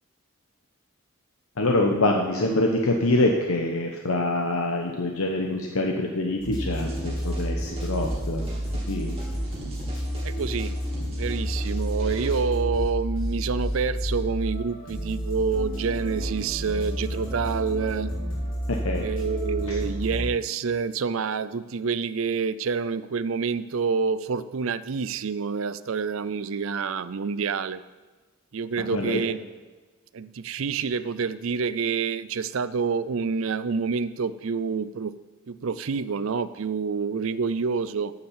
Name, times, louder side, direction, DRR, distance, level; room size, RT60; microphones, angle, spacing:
voice 1, 1.6-8.5 8.9-9.1 18.7-19.1 19.7-19.8 28.9-29.2, left 2 dB, 85° left, 2 dB, 1.0 m, -25 dB
sound 1, 6.4-20.3, equal, 70° left, 4.1 m, -30 dB
sound 2, 6.7-12.3, right 1 dB, 25° right, 2.8 m, -42 dB
voice 2, 10.2-10.7 11.1-18.1 19.0-27.8 28.5-29.4 30.1-35.1 35.5-38.1, right 5 dB, 70° right, 15 dB, 0.5 m, -28 dB
9.5 x 7.2 x 7.3 m, 1.3 s
head